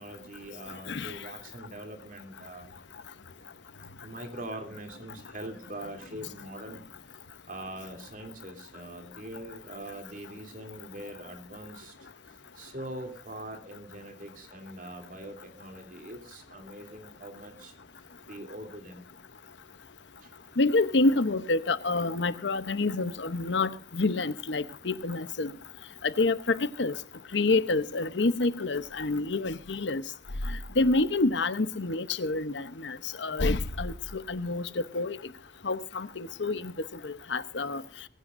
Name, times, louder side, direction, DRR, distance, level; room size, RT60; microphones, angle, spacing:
voice 1, 0.0-2.7 4.0-6.8 7.5-11.9 12.6-17.7 18.3-19.0 20.2-20.3, right 1 dB, 45° right, 3.1 m, -42 dB
voice 2, 20.6-25.5 26.0-26.9 27.3-30.0 30.5-35.2 35.6-36.7 37.0-37.8, left 3 dB, 75° left, 0.9 m, -28 dB
20.5 x 16.0 x 2.6 m
head